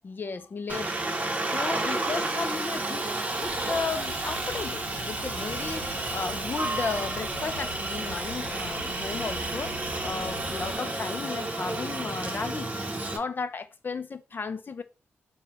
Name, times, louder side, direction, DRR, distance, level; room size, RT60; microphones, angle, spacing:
voice 1, 0.0-0.9 1.4-3.0 3.4-5.8 6.1-9.8 10.0-12.7 13.1-14.8, left 4 dB, 45° left, 0.4 m, -34 dB
Aircraft, 0.7-13.2, right 2 dB, 30° right, 0.8 m, -31 dB
sound 1, 3.4-10.7, left 1 dB, 85° left, 0.7 m, -44 dB
4.1 x 2.2 x 4.1 m
cardioid pair, 70°, 5 cm